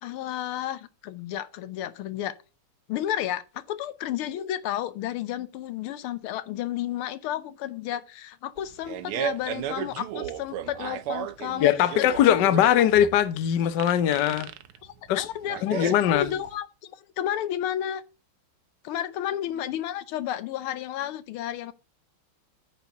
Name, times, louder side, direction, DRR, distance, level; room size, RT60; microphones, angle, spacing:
voice 1, 0.0-2.3 2.9-11.7 12.0-12.4 12.8-13.1 14.8-18.0 18.8-21.7, left 11 dB, 85° left, 1.6 m, -32 dB
Fart, 8.6-16.5, right 10 dB, 85° right, 1.6 m, -35 dB
voice 2, 11.6-14.5 15.1-15.3 15.6-16.3, left 10 dB, 60° left, 1.3 m, -21 dB
9.3 x 4.5 x 6.8 m
omnidirectional pair, 2.3 m